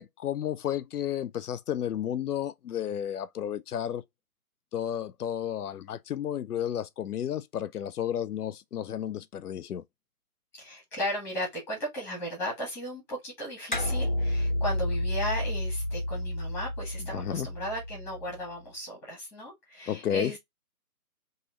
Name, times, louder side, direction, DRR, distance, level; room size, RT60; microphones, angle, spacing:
voice 1, 0.0-4.0 4.7-9.8 17.1-17.5 19.9-20.3, left 10 dB, 90° left, 0.5 m, -32 dB
voice 2, 10.5-20.4, equal, 5° left, 1.0 m, -36 dB
sound 1, 13.7-18.5, left 1 dB, 35° left, 0.4 m, -31 dB
3.1 x 2.7 x 3.8 m
figure-of-eight pair, 155°, 44 cm